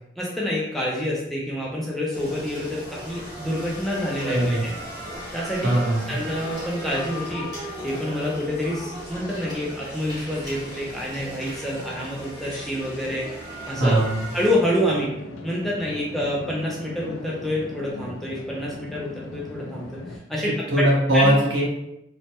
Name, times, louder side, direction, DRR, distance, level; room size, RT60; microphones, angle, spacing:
voice 1, 0.2-4.6 5.3-5.7 6.1-7.5 7.8-13.4 13.7-14.0 14.3-15.1 15.4-20.8 21.1-21.3, left 1 dB, ahead, -5 dB, 0.4 m, -27 dB
sound 1, 2.1-14.5, equal, 20° right, 0.9 m, -37 dB
voice 2, 4.2-4.6 5.6-6.2 13.8-14.3 20.4-21.7, right 1 dB, 65° right, -4 dB, 0.8 m, -20 dB
sound 2, 14.4-20.2, left 2 dB, 90° left, 0.5 m, -38 dB
3.1 x 2.1 x 2.8 m, 0.85 s
head